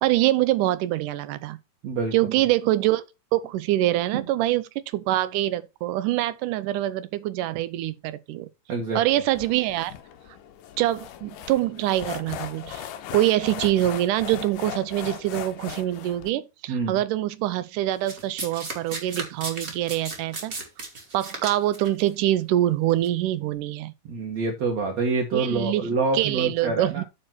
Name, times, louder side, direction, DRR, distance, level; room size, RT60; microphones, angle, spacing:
voice 1, 0.0-1.6 2.1-3.0 3.3-4.6 4.9-8.5 9.0-9.9 10.8-12.8 13.1-20.5 21.1-23.9 25.3-27.0, right 14 dB, 75° right, 2.3 m, -24 dB
voice 2, 8.7-9.0 16.7-17.0 24.1-27.0, right 4 dB, 60° right, 2.5 m, -26 dB
sound 1, 9.4-16.3, left 10 dB, 80° left, 2.5 m, -38 dB
Domestic sounds home sounds, 18.1-22.0 22.9-23.1, right 3 dB, 30° right, 2.3 m, -34 dB
9.0 x 4.5 x 5.9 m
omnidirectional pair, 3.8 m